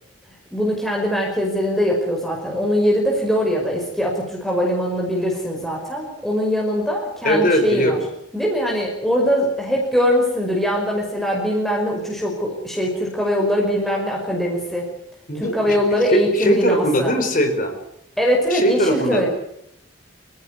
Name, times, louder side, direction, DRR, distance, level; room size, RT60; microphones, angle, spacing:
voice 1, 0.5-8.0 8.3-14.9 15.3-17.1 18.2-19.3, equal, ahead, -2 dB, 5.3 m, -22 dB
voice 2, 7.2-8.0 15.3-15.8 16.1-17.7 18.5-19.3, equal, 45° left, 6 dB, 4.5 m, -20 dB
26.0 x 15.5 x 9.7 m, 0.77 s
head